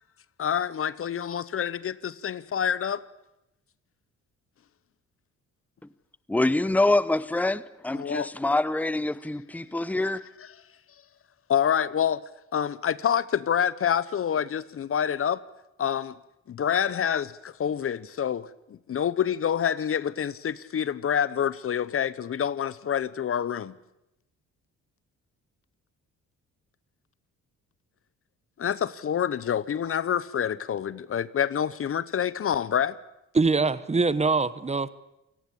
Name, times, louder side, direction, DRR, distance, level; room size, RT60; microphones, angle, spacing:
voice 1, 0.4-3.0 7.9-8.3 11.5-12.2 12.5-15.4 15.8-16.1 16.6-17.3 17.6-18.4 18.9-23.7 28.6-32.9, left 8 dB, 45° left, 0.8 m, -27 dB
voice 2, 6.3-10.3, left 2 dB, 5° left, 0.8 m, -25 dB
voice 3, 33.3-34.9, right 4 dB, 20° right, 1.0 m, -23 dB
28.0 x 19.0 x 8.6 m
cardioid pair, 90°, 30 cm